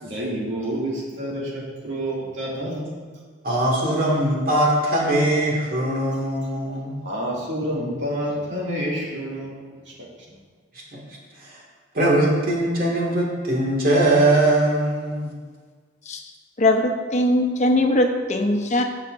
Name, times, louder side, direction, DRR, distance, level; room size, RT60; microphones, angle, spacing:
voice 1, 0.0-3.0 7.0-9.9, equal, 80° right, -4 dB, 2.3 m, -29 dB
voice 2, 3.4-7.0 10.9-11.0 11.4-11.6 11.9-15.3, right 1 dB, 50° right, -3 dB, 2.1 m, -21 dB
voice 3, 16.6-18.8, left 1 dB, 40° left, 4 dB, 0.7 m, -20 dB
15.0 x 5.7 x 2.6 m, 1.5 s
head